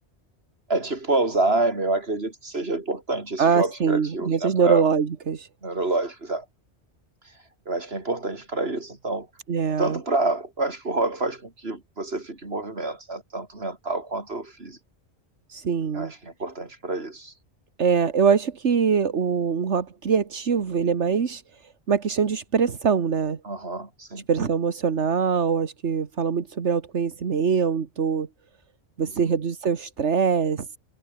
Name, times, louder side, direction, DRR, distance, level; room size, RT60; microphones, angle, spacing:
voice 1, 0.7-4.8 5.6-6.4 7.7-9.3 9.8-14.8 15.9-17.3 23.4-24.3 29.0-29.3, right 2 dB, 60° right, 4.1 m, -27 dB
voice 2, 3.4-5.5 9.5-10.0 15.5-16.1 17.8-21.4 21.9-23.4 24.3-28.3 29.0-30.7, right 6 dB, 80° right, 1.8 m, -23 dB
omnidirectional pair, 1.2 m